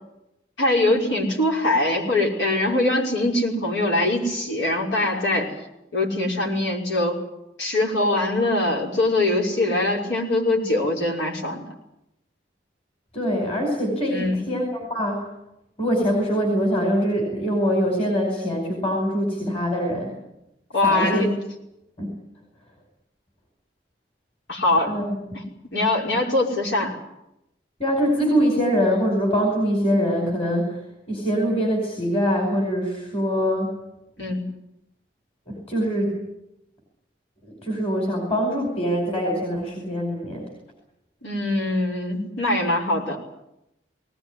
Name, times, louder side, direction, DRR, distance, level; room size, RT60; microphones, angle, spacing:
voice 1, 0.6-5.5 5.9-7.2 7.6-11.6 14.1-14.4 20.7-21.3 24.5-24.9 25.3-25.4 25.7-27.0 34.2-34.4 41.2-43.2, left 2 dB, 90° left, -1 dB, 5.6 m, -22 dB
voice 2, 13.1-15.3 15.8-20.1 20.8-21.2 22.0-22.2 24.9-25.1 27.8-30.8 31.1-33.8 35.5-36.2 37.4-40.5, equal, 35° left, 1 dB, 5.0 m, -23 dB
20.0 x 19.0 x 9.8 m, 0.88 s
head